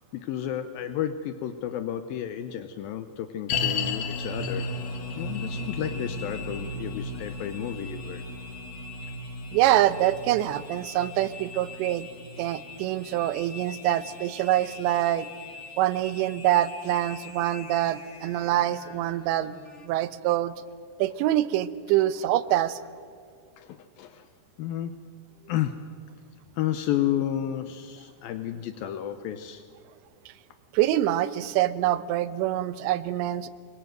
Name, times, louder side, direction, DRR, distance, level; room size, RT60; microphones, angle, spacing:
voice 1, 0.1-4.7 5.2-8.2 23.6-24.3 24.6-25.0 25.5-25.9 26.5-29.6, left 11 dB, 80° left, 10 dB, 2.1 m, -32 dB
sound 1, 3.5-14.8 15.0-15.1 15.8-15.9, left 3 dB, 60° left, 3.0 m, -35 dB
sound 2, 4.3-19.9, left 5 dB, 40° left, 1.0 m, -46 dB
voice 2, 9.5-12.1 12.4-15.3 15.8-19.6 19.8-20.5 21.0-22.8 30.3-30.4 30.7-33.5, right 13 dB, 80° right, 14 dB, 3.0 m, -25 dB
25.5 x 23.0 x 7.8 m, 2.2 s
omnidirectional pair, 5.3 m